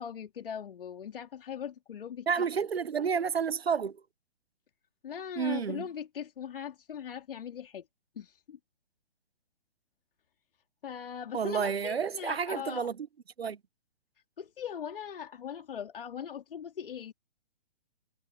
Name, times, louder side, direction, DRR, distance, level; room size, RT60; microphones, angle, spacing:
voice 1, 0.0-2.3 5.0-7.8 8.2-8.6 10.8-12.9 14.4-17.1, left 8 dB, 60° left, 2.8 m, -40 dB
voice 2, 2.3-4.0 5.4-5.9 11.3-12.9 13.4-13.6, right 6 dB, 70° right, 1.3 m, -30 dB
figure-of-eight pair, 130°, 32 cm